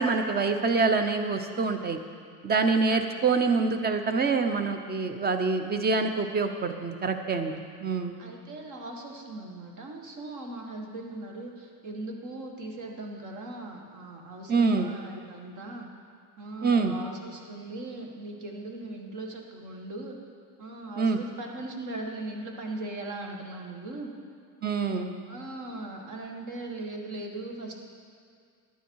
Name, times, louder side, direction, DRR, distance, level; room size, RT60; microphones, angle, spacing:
voice 1, 0.0-2.0 2.4-8.2 14.5-14.9 16.6-17.0 21.0-21.2 24.6-25.1, right 4 dB, 25° right, 7 dB, 0.7 m, -26 dB
voice 2, 2.8-3.2 8.2-15.9 16.4-20.2 20.6-24.1 25.3-27.7, right 2 dB, 50° right, 1 dB, 1.7 m, -39 dB
11.0 x 9.8 x 4.7 m, 2.1 s
cardioid pair, 135°, 39 cm